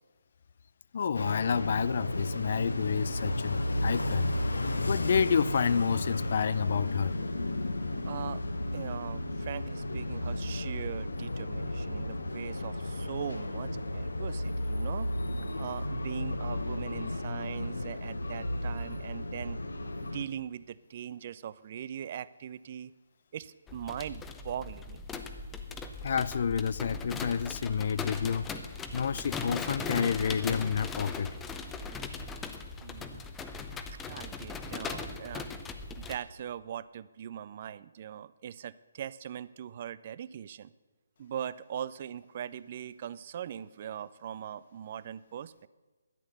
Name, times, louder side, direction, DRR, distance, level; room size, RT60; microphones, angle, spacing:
voice 1, 0.9-4.3 4.9-7.1 26.0-28.5 28.9-31.3, left 6 dB, 50° left, 18 dB, 0.3 m, -29 dB
sound 1, 1.1-20.3, left 1 dB, 75° left, 1.0 m, -33 dB
voice 2, 8.0-8.4 8.7-15.1 15.6-19.6 20.0-22.9 23.3-25.0 32.8-33.2 33.9-35.5 36.0-40.7 41.2-45.5, right 9 dB, 40° right, 18 dB, 0.4 m, -40 dB
sound 2, 23.7-36.2, left 4 dB, 10° left, 0.7 m, -39 dB
12.0 x 9.0 x 6.8 m, 1.2 s
figure-of-eight pair, 145°, 0 cm